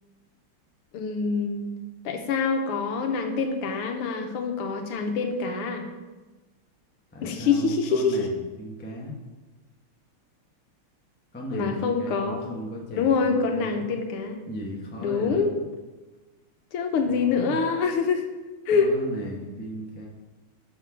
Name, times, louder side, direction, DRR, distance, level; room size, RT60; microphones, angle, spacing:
voice 1, 0.9-1.7 2.0-5.8 7.2-8.3 11.5-12.5 12.9-14.4 15.0-15.5 16.7-18.2 18.7-18.9, left 5 dB, 80° left, 5 dB, 1.8 m, -25 dB
voice 2, 7.1-9.1 11.3-13.8 14.5-15.6 17.0-17.5 18.7-20.1, equal, 10° left, -1 dB, 0.5 m, -36 dB
6.6 x 6.0 x 5.9 m, 1.2 s
omnidirectional pair, 2.4 m